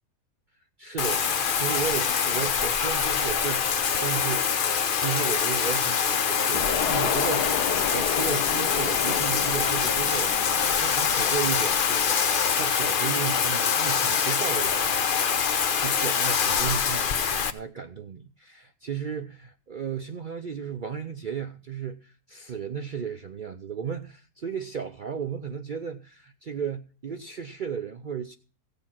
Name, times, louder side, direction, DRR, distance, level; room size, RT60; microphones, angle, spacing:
voice 1, 0.8-15.3 15.7-28.3, right 7 dB, 80° right, 0.4 m, -34 dB
Bathtub (filling or washing), 1.0-17.5, left 7 dB, 50° left, 0.6 m, -24 dB
sound 1, 6.5-11.8, left 8 dB, 75° left, 1.4 m, -32 dB
15.5 x 6.8 x 5.8 m
omnidirectional pair, 1.7 m